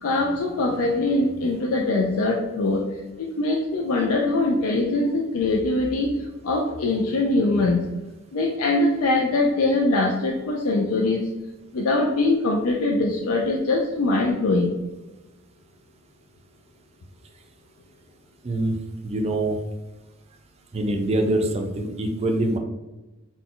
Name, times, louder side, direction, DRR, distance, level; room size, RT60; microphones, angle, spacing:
voice 1, 0.0-2.9 3.2-7.8 8.3-11.3 11.7-14.8, left 2 dB, 85° left, 0 dB, 0.4 m, -22 dB
voice 2, 18.4-18.7 19.0-19.6 20.7-22.6, right 1 dB, 30° right, 4 dB, 0.4 m, -24 dB
4.0 x 2.2 x 3.7 m, 1.1 s
head